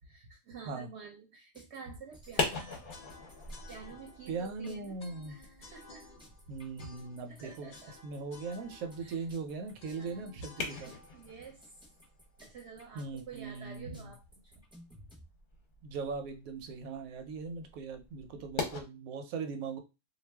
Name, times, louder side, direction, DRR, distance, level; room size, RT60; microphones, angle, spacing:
voice 1, 0.1-2.7 3.7-4.9 5.3-6.1 6.8-7.0 7.3-7.9 9.0-9.3 10.0-11.8 12.4-14.6, right 5 dB, 60° right, 1 dB, 0.8 m, -49 dB
sound 1, 1.5-15.2, left 1 dB, 5° right, 0.5 m, -59 dB
sound 2, 2.1-18.8, left 3 dB, 45° left, 0.7 m, -43 dB
sound 3, 2.6-12.7, left 3 dB, 80° left, 0.4 m, -56 dB
voice 2, 4.3-5.4 6.5-7.7 8.0-10.9 12.9-14.1 15.8-19.8, right 4 dB, 85° right, 6 dB, 1.1 m, -39 dB
2.3 x 2.3 x 3.3 m, 0.27 s
omnidirectional pair, 1.4 m